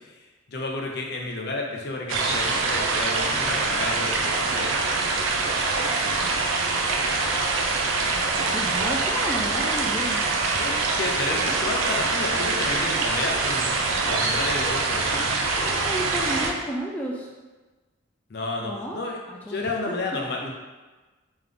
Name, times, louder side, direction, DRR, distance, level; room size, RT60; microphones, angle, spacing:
voice 1, 0.5-6.3 10.6-13.7 14.1-15.3 18.3-19.2 19.5-20.5, left 2 dB, 50° left, 0 dB, 0.6 m, -32 dB
sound 1, 2.1-16.5, right 3 dB, 75° right, 0.5 m, -24 dB
voice 2, 8.3-10.2 15.5-17.3 18.6-19.0 19.3-19.7 20.2-20.3, equal, 5° left, -3 dB, 0.3 m, -32 dB
3.5 x 3.1 x 3.7 m, 1.2 s
head